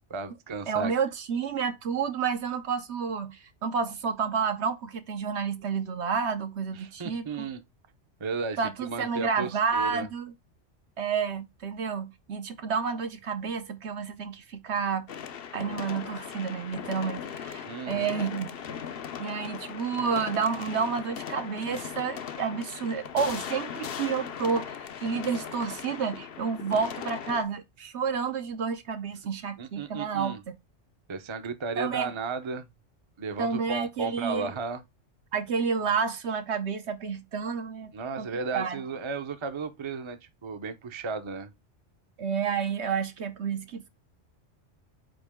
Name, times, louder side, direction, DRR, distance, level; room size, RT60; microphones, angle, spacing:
voice 1, 0.1-0.9 6.7-7.6 8.2-10.1 17.6-18.1 29.6-30.4 31.1-32.7 33.2-34.8 37.9-41.5, right 4 dB, 30° right, 0.7 m, -34 dB
voice 2, 0.7-7.5 8.6-10.3 11.0-15.0 15.5-18.5 19.2-30.5 31.8-32.1 33.4-34.5 35.3-37.9 38.2-38.3 38.5-38.8 42.2-43.8, right 6 dB, 65° right, 1.1 m, -30 dB
sound 1, 15.1-27.4, left 8 dB, 55° left, 0.8 m, -38 dB
8.9 x 3.0 x 3.6 m
omnidirectional pair, 1.3 m